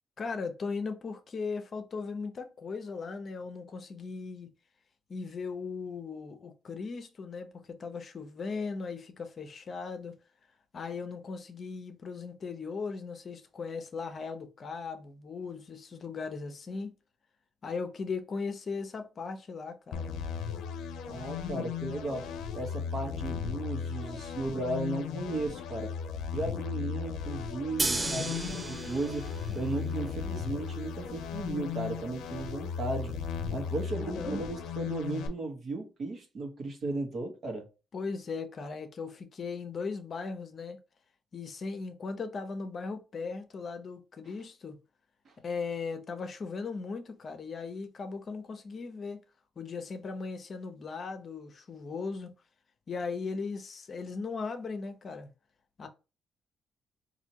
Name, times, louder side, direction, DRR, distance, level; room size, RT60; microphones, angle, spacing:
voice 1, 0.2-4.5 5.1-10.1 10.7-16.9 17.6-20.1 29.5-30.1 34.0-34.4 37.9-40.8 41.3-44.8 45.4-49.2 49.6-52.3 52.9-55.3 55.8-55.9, left 4 dB, 45° left, 0.7 m, -38 dB
sound 1, 19.9-35.3, left 6 dB, 85° left, 0.6 m, -36 dB
voice 2, 21.1-25.9 26.3-29.3 29.5-33.2 33.5-37.7 45.2-45.3, right 2 dB, 55° right, 1.2 m, -35 dB
sound 2, 27.8-33.8, right 2 dB, 25° right, 0.4 m, -38 dB
4.1 x 2.7 x 2.8 m
cardioid pair, 90°, 0 cm